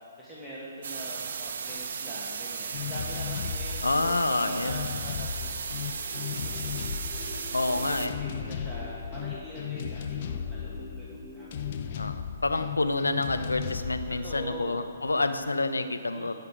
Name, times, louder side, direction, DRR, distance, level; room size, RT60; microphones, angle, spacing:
voice 1, 0.2-12.0 14.1-14.8 16.1-16.3, right 1 dB, ahead, -10 dB, 2.0 m, -44 dB
sound 1, 0.8-8.1, right 6 dB, 55° right, 0.9 m, -36 dB
sound 2, 2.7-15.5, left 8 dB, 45° left, 0.7 m, -36 dB
voice 2, 3.8-4.7 7.5-8.1 11.9-16.3, left 2 dB, 85° left, 8 dB, 0.9 m, -28 dB
sound 3, 6.0-12.0, left 1 dB, 15° left, 2.4 m, -46 dB
17.0 x 6.9 x 4.9 m, 2.3 s
figure-of-eight pair, 135°, 0 cm